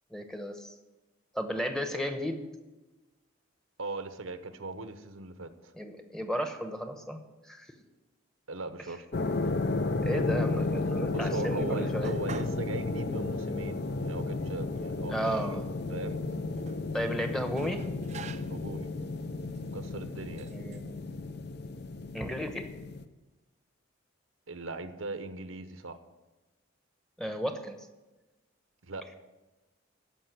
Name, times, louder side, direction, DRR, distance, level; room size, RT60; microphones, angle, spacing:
voice 1, 0.1-0.7 1.3-2.4 5.8-7.2 7.4-7.7 10.0-12.1 15.1-15.7 16.9-17.8 20.5-21.0 22.1-22.7 27.2-27.8, equal, 5° left, 6 dB, 0.9 m, -34 dB
voice 2, 3.8-5.7 8.5-9.3 11.1-15.4 15.9-16.2 18.5-18.9 19.7-20.5 24.5-26.0 28.8-29.1, right 2 dB, 90° right, 9 dB, 1.0 m, -39 dB
sound 1, 9.1-23.1, left 3 dB, 55° left, 0.6 m, -33 dB
sound 2, 12.0-12.7 13.0-13.1 13.9-14.0 14.4-15.3 16.2-16.8 17.6-18.7 19.5-19.7 20.4-20.8, right 5 dB, 35° right, 0.4 m, -46 dB
14.0 x 5.5 x 9.3 m, 1.1 s
head